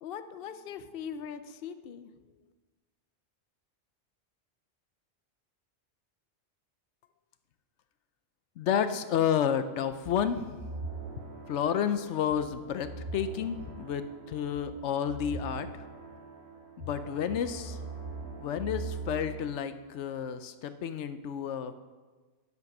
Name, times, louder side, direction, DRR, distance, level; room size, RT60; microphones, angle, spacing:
voice 1, 0.0-2.1, left 7 dB, 60° left, 10 dB, 0.8 m, -41 dB
voice 2, 8.6-10.6 11.5-15.7 16.8-17.8 18.4-21.7, left 8 dB, 85° left, 11 dB, 1.0 m, -31 dB
sound 1, 10.0-19.6, right 3 dB, 60° right, 3.3 m, -42 dB
10.5 x 7.6 x 5.9 m, 1.3 s
omnidirectional pair, 1.2 m